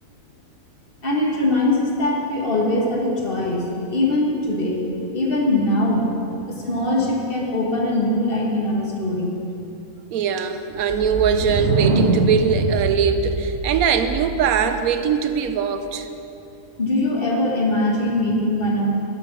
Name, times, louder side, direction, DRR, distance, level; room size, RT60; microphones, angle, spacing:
voice 1, 1.0-4.8 5.1-6.1 6.5-9.3 16.8-18.9, left 1 dB, 40° left, -2 dB, 1.7 m, -21 dB
voice 2, 10.1-16.1, right 7 dB, 90° right, 8 dB, 1.1 m, -21 dB
sound 1, 10.8-14.6, right 2 dB, 55° right, 1.1 m, -23 dB
11.5 x 7.0 x 5.9 m, 2.7 s
omnidirectional pair, 1.5 m